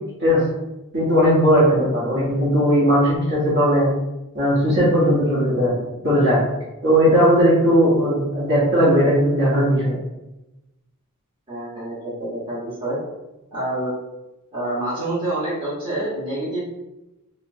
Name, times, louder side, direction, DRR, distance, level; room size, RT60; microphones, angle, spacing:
voice 1, 0.9-3.9 4.3-5.8 6.0-6.4 6.8-10.0, equal, 55° right, -7 dB, 1.0 m, -17 dB
voice 2, 11.5-13.0 13.5-13.9 14.5-16.7, right 1 dB, 25° right, -9 dB, 0.9 m, -27 dB
2.9 x 2.0 x 2.6 m, 0.98 s
head